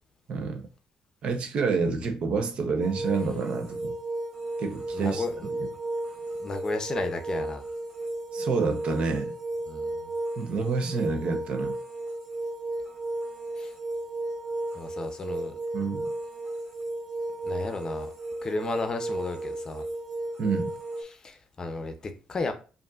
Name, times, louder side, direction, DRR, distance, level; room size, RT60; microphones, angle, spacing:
voice 1, 0.3-0.6 1.2-3.9 4.6-5.7 8.3-9.3 10.4-11.8 15.7-16.1 20.4-20.7, right 4 dB, 60° right, 0.8 m, -28 dB
sound 1, 2.8-21.0, right 2 dB, 15° right, 1.6 m, -34 dB
voice 2, 4.9-5.5 6.4-7.6 9.7-10.1 13.6-13.7 14.7-15.5 17.4-18.1 18.4-19.9 21.0-22.5, left 3 dB, 35° left, 0.6 m, -33 dB
5.2 x 2.6 x 2.4 m
cardioid pair, 100°, 2 cm